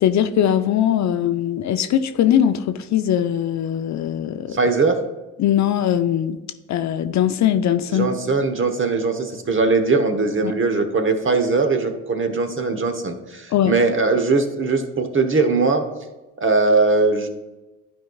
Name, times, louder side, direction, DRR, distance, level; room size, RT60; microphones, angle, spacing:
voice 1, 0.0-4.6 5.4-6.4 6.7-8.1 10.4-10.5 13.5-13.7, left 10 dB, 50° left, 10 dB, 0.5 m, -20 dB
voice 2, 4.5-5.0 7.9-15.9 16.4-17.3, right 3 dB, 35° right, 6 dB, 1.1 m, -20 dB
11.0 x 4.7 x 2.4 m, 1.1 s
supercardioid pair, 60°, 36 cm